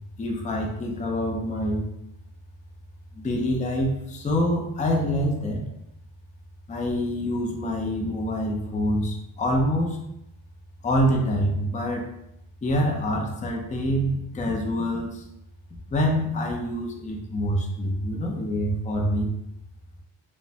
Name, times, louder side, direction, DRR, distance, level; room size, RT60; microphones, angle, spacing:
voice 1, 0.2-1.9 3.1-5.6 6.7-10.0 10.8-12.1 12.6-15.2 15.9-19.3, equal, 15° left, 1 dB, 0.4 m, -26 dB
3.1 x 2.1 x 2.7 m, 0.80 s
cardioid pair, 80°, 49 cm